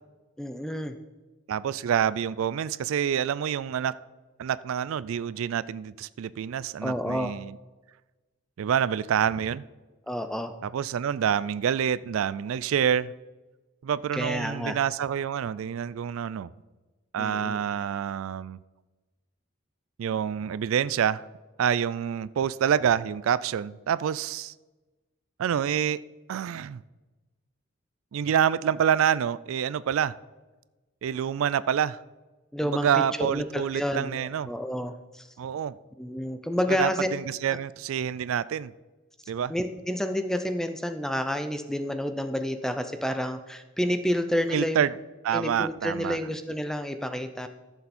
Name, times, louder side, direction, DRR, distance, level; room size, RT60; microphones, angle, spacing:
voice 1, 0.4-1.0 6.8-7.3 10.1-10.5 14.1-14.8 17.2-17.6 32.5-35.3 36.0-37.1 37.5-37.6 39.5-44.9 45.3-47.5, equal, ahead, 8 dB, 0.5 m, -29 dB
voice 2, 1.5-3.9 4.4-7.5 8.6-9.6 10.6-13.1 13.8-16.5 17.1-18.6 20.0-21.2 21.6-24.5 25.4-26.0 26.3-26.8 28.1-30.1 31.0-32.0 32.6-34.5 35.4-35.8 36.8-38.7 39.3-39.5 44.5-44.9 45.2-46.2, right 8 dB, 75° right, 17 dB, 0.3 m, -27 dB
14.0 x 7.0 x 4.2 m, 1.2 s
head